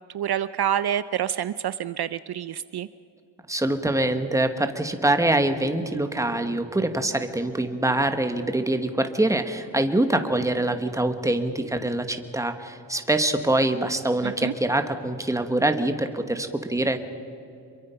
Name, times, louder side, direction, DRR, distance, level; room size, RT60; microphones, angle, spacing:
voice 1, 0.1-2.9 14.2-14.5, right 10 dB, 60° right, 14 dB, 0.5 m, -27 dB
voice 2, 3.5-17.0, right 1 dB, 5° right, 7 dB, 1.2 m, -24 dB
27.0 x 23.0 x 5.7 m, 2.7 s
wide cardioid pair, 170°, 44 cm